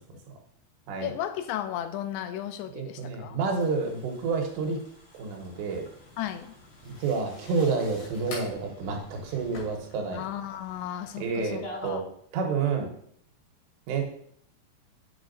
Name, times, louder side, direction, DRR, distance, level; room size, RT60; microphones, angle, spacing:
voice 1, 1.0-3.4 6.2-6.5 10.1-12.0, left 11 dB, 85° left, 9 dB, 2.5 m, -35 dB
voice 2, 2.7-4.8 5.1-5.9 6.8-10.2 11.2-12.1 12.3-12.9 13.9-14.0, right 4 dB, 90° right, 1 dB, 3.4 m, -29 dB
sound 1, 3.4-11.9, left 1 dB, 40° left, 2.4 m, -50 dB
sound 2, 5.7-10.8, left 2 dB, 70° left, 4.1 m, -47 dB
8.1 x 6.8 x 2.6 m, 0.65 s
omnidirectional pair, 4.9 m